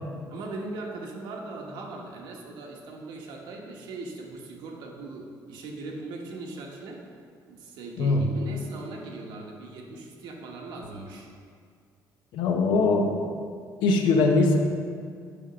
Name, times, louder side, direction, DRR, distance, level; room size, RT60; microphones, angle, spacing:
voice 1, 0.2-7.0 7.5-11.3, right 2 dB, 85° right, 0 dB, 1.3 m, -39 dB
voice 2, 12.3-13.2 13.8-14.6, left 3 dB, 90° left, 3 dB, 0.9 m, -21 dB
7.1 x 5.2 x 5.7 m, 2.2 s
cardioid pair, 135°, 8 cm